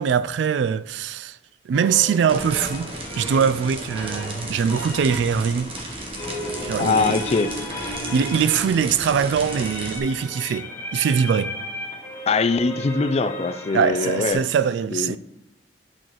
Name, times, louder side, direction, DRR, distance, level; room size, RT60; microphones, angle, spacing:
voice 1, 0.0-1.4 1.7-5.7 6.6-7.2 7.9-11.5 13.7-15.2, right 7 dB, 70° right, 0.3 m, -22 dB
sound 1, 1.7-14.3, left 1 dB, 15° left, 2.0 m, -35 dB
sound 2, 2.3-10.0, right 1 dB, 30° right, 1.2 m, -34 dB
voice 2, 6.8-7.5 12.3-14.4 14.9-15.2, left 4 dB, 35° left, 0.4 m, -22 dB
11.0 x 6.3 x 3.0 m
head